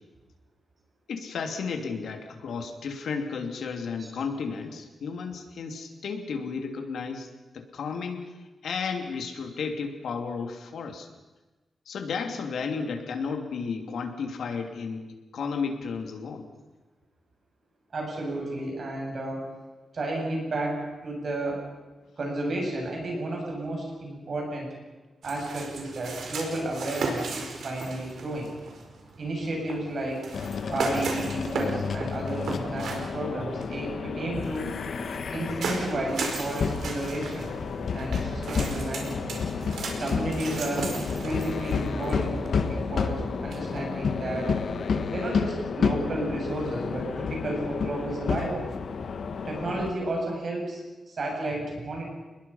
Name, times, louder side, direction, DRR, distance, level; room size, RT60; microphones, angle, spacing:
voice 1, 1.1-7.3 7.5-8.2 8.6-11.1 11.9-15.1 15.3-16.5, left 5 dB, 90° left, 5 dB, 2.8 m, -33 dB
voice 2, 17.9-19.5 19.9-21.6 22.2-24.7 25.2-28.5 29.2-30.2 30.7-34.7 35.3-37.5 37.9-39.4 40.0-44.5 45.1-48.7 49.4-50.8 51.1-52.1, right 1 dB, 45° right, 0 dB, 7.6 m, -32 dB
sound 1, 25.2-43.9, right 3 dB, 85° right, 4.7 m, -37 dB
sound 2, 30.3-49.9, left 5 dB, 60° left, 1.6 m, -31 dB
29.5 x 21.0 x 5.7 m, 1.2 s
wide cardioid pair, 175°, 0 cm